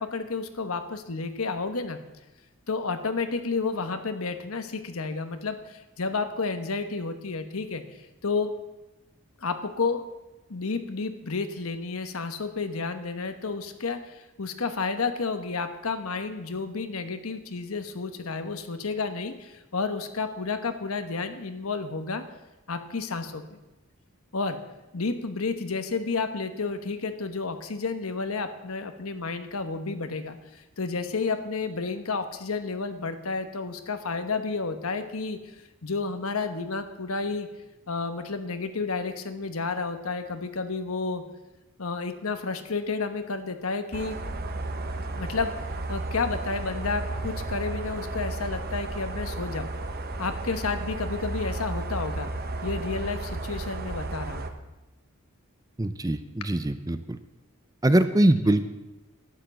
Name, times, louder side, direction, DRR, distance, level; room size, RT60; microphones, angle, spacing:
voice 1, 0.0-2.0 2.7-8.6 9.4-10.1 10.5-22.2 22.7-23.6 24.3-24.6 24.9-35.5 35.8-37.5 37.9-41.2 41.8-44.2 45.1-49.7 50.2-52.3 52.6-54.5, left 4 dB, 80° left, 8 dB, 1.2 m, -31 dB
sound 1, 43.9-54.5, right 2 dB, 45° right, 1.0 m, -33 dB
voice 2, 55.8-57.2 57.8-58.7, right 1 dB, 15° right, 11 dB, 0.5 m, -23 dB
12.0 x 9.4 x 7.5 m, 1.0 s
head